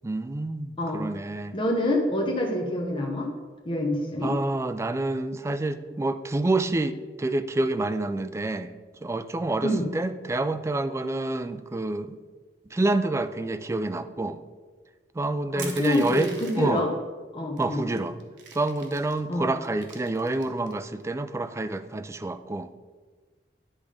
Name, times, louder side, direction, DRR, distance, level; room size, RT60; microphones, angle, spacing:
voice 1, 0.0-1.6 4.2-8.7 9.0-12.2 12.7-14.4 15.2-16.3 16.6-16.8 17.6-18.1 18.5-22.7, right 2 dB, 15° right, 11 dB, 0.3 m, -28 dB
voice 2, 1.5-3.3 3.6-4.3 9.6-9.9 15.5-16.9 17.3-17.8 19.3-19.5, left 1 dB, 30° left, 0 dB, 1.0 m, -26 dB
Crushing, 15.6-16.8 17.6-17.7 18.0-19.2 19.6-20.7, right 5 dB, 85° right, 1.1 m, -42 dB
10.0 x 3.5 x 5.0 m, 1.4 s
head